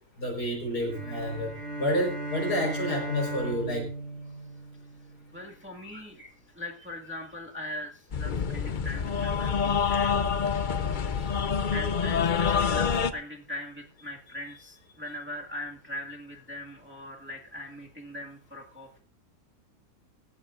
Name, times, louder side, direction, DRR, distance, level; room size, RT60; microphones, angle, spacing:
voice 1, 0.2-3.9 11.1-11.4, equal, 75° left, 2 dB, 5.3 m, -30 dB
sound 1, 0.8-5.3, right 2 dB, 45° right, 6.5 m, -36 dB
voice 2, 5.3-10.2 11.7-19.0, left 1 dB, 5° right, -1 dB, 1.9 m, -40 dB
sound 2, 8.1-13.1, left 6 dB, 60° left, 0.5 m, -27 dB
17.0 x 15.0 x 2.6 m, 0.39 s
omnidirectional pair, 1.7 m